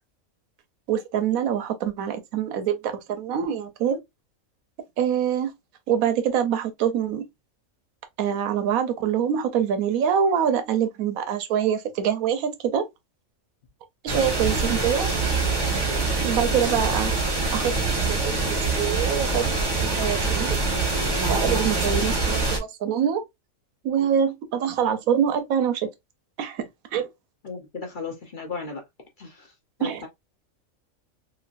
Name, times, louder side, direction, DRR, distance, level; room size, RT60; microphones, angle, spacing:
voice 1, 0.9-4.0 5.0-5.5 5.9-7.2 8.2-12.8 14.0-15.2 15.7-17.1 17.5-17.7 18.1-19.5 19.8-20.6 21.3-23.2 23.8-25.9 26.4-27.1 29.8-30.0, right 8 dB, 85° right, 1.1 m, -25 dB
sound 1, 14.1-22.6, right 3 dB, 20° right, 0.8 m, -24 dB
voice 2, 27.4-28.8 29.2-29.5 29.8-30.1, left 4 dB, 45° left, 0.8 m, -35 dB
3.0 x 2.6 x 2.5 m
omnidirectional pair, 1.4 m